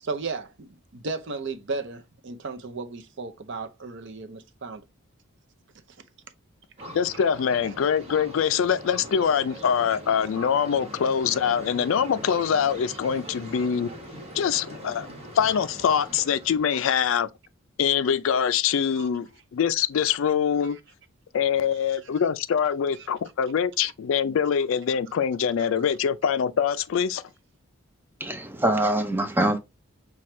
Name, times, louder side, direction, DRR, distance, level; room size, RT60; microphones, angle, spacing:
voice 1, 0.0-4.8 19.0-19.1, right 4 dB, 60° right, 0.6 m, -34 dB
sound 1, 6.8-16.9, equal, 30° right, 1.4 m, -41 dB
voice 2, 6.9-13.9 14.3-15.1 15.3-17.3 17.8-20.8 21.3-27.2, left 7 dB, 65° left, 0.3 m, -24 dB
voice 3, 28.2-29.6, right 1 dB, 10° right, 0.4 m, -24 dB
5.8 x 2.3 x 3.1 m
head